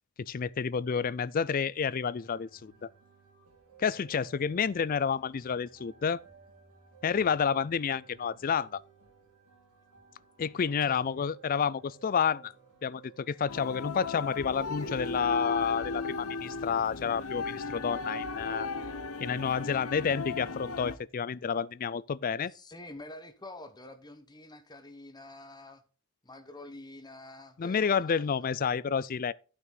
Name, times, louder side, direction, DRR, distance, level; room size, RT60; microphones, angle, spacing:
voice 1, 0.2-2.9 3.8-6.2 7.0-8.8 10.4-12.5 12.8-18.7 19.2-22.5 27.6-29.3, left 6 dB, 40° left, 0.3 m, -30 dB
sound 1, 2.1-19.7, right 6 dB, 90° right, 2.9 m, -57 dB
sound 2, 13.5-21.0, left 3 dB, 70° left, 0.9 m, -36 dB
voice 2, 22.5-25.8 26.2-28.5, left 2 dB, 20° left, 1.1 m, -48 dB
12.0 x 6.0 x 3.9 m
head